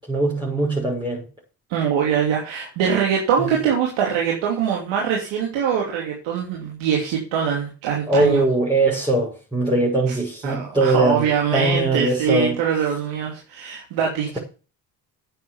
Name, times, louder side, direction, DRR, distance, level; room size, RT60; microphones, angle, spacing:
voice 1, 0.1-1.2 3.4-3.5 8.1-12.6, right 2 dB, 10° right, 6.4 m, -21 dB
voice 2, 1.7-8.4 10.0-10.2 10.4-14.4, right 7 dB, 70° right, 3.1 m, -23 dB
9.8 x 7.8 x 7.2 m
hypercardioid pair, 55°, 49 cm